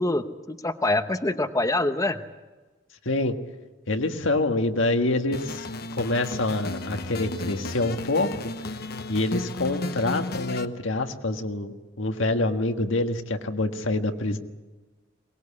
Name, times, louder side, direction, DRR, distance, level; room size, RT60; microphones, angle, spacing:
voice 1, 0.0-2.2, left 2 dB, 15° left, 8 dB, 0.9 m, -25 dB
voice 2, 3.0-3.4 3.9-5.7 5.9-8.3 9.1-14.4, left 2 dB, 80° left, 6 dB, 1.6 m, -26 dB
sound 1, 5.3-10.6, left 2 dB, 55° left, 1.0 m, -34 dB
22.5 x 19.5 x 8.5 m, 1.2 s
head